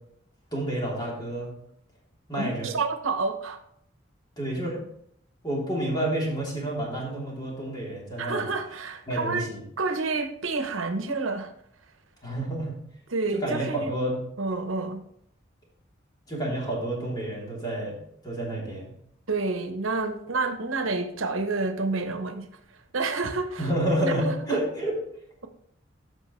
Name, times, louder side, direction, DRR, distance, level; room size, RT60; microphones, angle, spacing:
voice 1, 0.5-1.5 2.3-2.7 4.4-4.8 5.4-8.5 9.1-9.6 12.2-12.7 13.3-14.2 16.3-18.0 18.2-18.9 23.6-24.9, right 1 dB, 20° left, -4 dB, 3.3 m, -29 dB
voice 2, 2.3-3.6 8.2-9.5 9.8-11.5 13.1-13.9 14.4-15.0 19.3-22.5 22.9-23.7 24.0-24.6, right 3 dB, 90° right, 7 dB, 0.9 m, -29 dB
14.0 x 5.8 x 3.2 m, 0.70 s
head